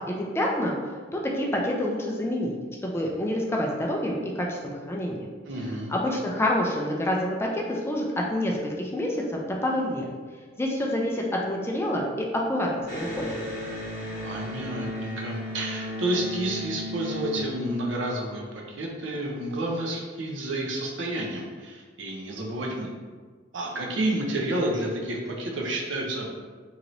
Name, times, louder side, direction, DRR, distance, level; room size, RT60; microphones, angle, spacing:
voice 1, 0.1-0.7 1.1-2.6 2.8-5.3 5.9-10.0 10.6-13.3, left 1 dB, 15° left, -1 dB, 0.3 m, -27 dB
voice 2, 5.5-5.9 14.2-22.9 23.5-26.3, right 1 dB, 80° right, -1 dB, 0.6 m, -30 dB
Electric guitar, 12.8-18.3, left 1 dB, 40° right, 1.4 m, -35 dB
3.0 x 2.8 x 2.6 m, 1.5 s
head